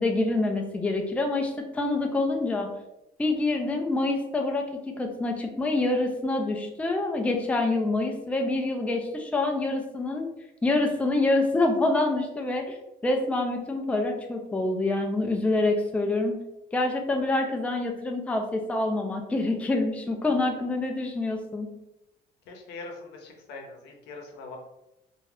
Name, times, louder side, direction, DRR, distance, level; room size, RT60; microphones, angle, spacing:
voice 1, 0.0-2.7 3.2-10.3 10.6-12.8 13.0-16.4 16.7-21.7, left 2 dB, 10° left, 3 dB, 0.4 m, -26 dB
voice 2, 22.5-24.6, left 3 dB, 80° left, 1 dB, 0.7 m, -42 dB
2.6 x 2.3 x 3.2 m, 0.89 s
cardioid pair, 110°, 17 cm